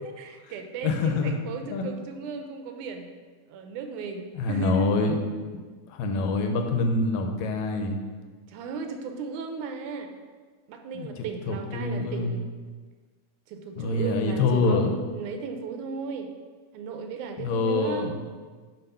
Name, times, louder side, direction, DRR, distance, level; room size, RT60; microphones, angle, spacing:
voice 1, 0.0-3.1 3.5-5.0 8.5-10.1 10.7-12.5 13.5-16.3 16.7-18.2, right 5 dB, 80° right, 5 dB, 2.1 m, -36 dB
voice 2, 0.8-1.4 1.7-1.8 4.3-5.2 5.5-5.6 5.9-8.0 10.9-12.4 13.8-14.9 17.4-18.2, left 3 dB, 75° left, 4 dB, 1.9 m, -26 dB
6.6 x 4.1 x 5.5 m, 1.5 s
omnidirectional pair, 3.5 m